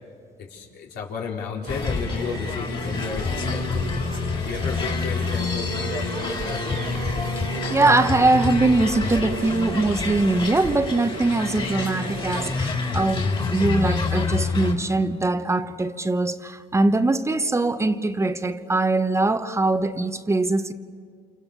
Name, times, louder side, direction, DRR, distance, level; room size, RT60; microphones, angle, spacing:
voice 1, 0.4-6.8, left 5 dB, 75° left, -1 dB, 4.6 m, -33 dB
sound 1, 1.6-12.6, right 7 dB, 70° right, 1.8 m, -37 dB
sound 2, 1.7-14.7, left 4 dB, 30° left, 3.5 m, -27 dB
voice 2, 7.7-20.7, right 2 dB, 15° right, 9 dB, 1.0 m, -22 dB
29.0 x 28.5 x 7.0 m, 2.2 s
cardioid pair, 110°, 17 cm